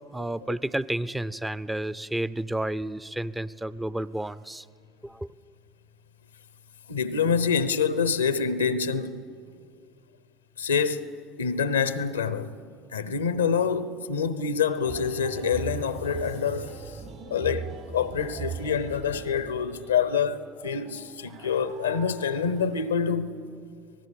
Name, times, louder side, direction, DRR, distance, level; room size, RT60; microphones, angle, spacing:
voice 1, 0.0-4.6 5.0-5.3, right 1 dB, 10° right, 0.5 m, -31 dB
voice 2, 6.9-9.2 10.6-11.1 11.4-12.5 12.9-17.0 17.3-23.4, left 6 dB, 90° left, 0.8 m, -26 dB
sound 1, 14.8-22.8, right 6 dB, 55° right, 7.6 m, -40 dB
25.5 x 18.5 x 7.0 m
hypercardioid pair, 70°, 0 cm